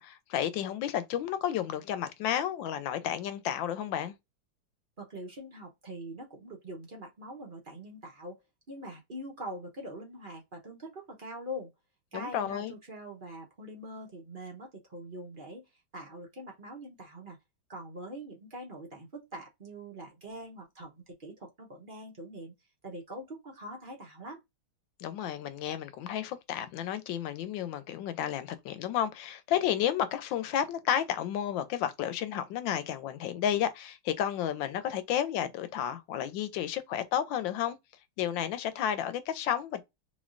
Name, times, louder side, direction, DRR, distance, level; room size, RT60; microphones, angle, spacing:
voice 1, 0.0-4.1 12.1-12.7 25.0-37.8 38.2-39.8, left 10 dB, 75° left, 1.3 m, -32 dB
voice 2, 5.0-8.4 8.7-11.7 12.1-15.6 15.9-17.4 17.7-22.5 22.8-24.4, equal, 40° right, 0.8 m, -43 dB
3.6 x 3.1 x 2.5 m
omnidirectional pair, 2.1 m